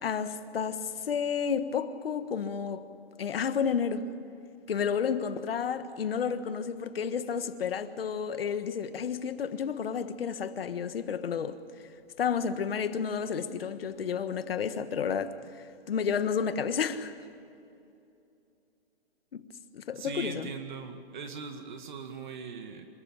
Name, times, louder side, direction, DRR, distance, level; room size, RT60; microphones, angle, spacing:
voice 1, 0.0-2.8 3.2-4.1 4.7-11.6 12.2-15.4 15.9-17.1 19.3-19.4 19.7-20.5, left 7 dB, 65° left, 1.5 m, -31 dB
voice 2, 19.9-22.9, right 5 dB, 45° right, 2.0 m, -40 dB
26.5 x 14.0 x 8.9 m
hypercardioid pair, 160°, 32 cm